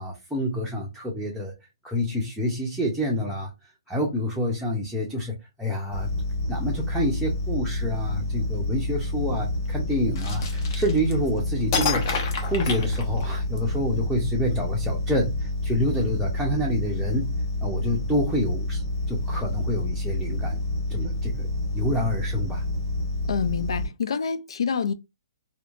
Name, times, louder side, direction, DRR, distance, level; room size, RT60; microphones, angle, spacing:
voice 1, 0.0-1.5 1.8-3.5 3.9-6.1 6.5-17.3 17.6-18.8 19.1-20.6 20.9-22.6, equal, ahead, 0.6 m, -28 dB
sound 1, 5.9-23.9, left 1 dB, 20° left, 1.3 m, -28 dB
sound 2, 10.2-11.3 11.7-13.6, left 6 dB, 40° left, 0.7 m, -29 dB
voice 2, 23.3-24.9, left 6 dB, 75° left, 0.4 m, -27 dB
2.9 x 2.2 x 2.4 m
hypercardioid pair, 150°, 3 cm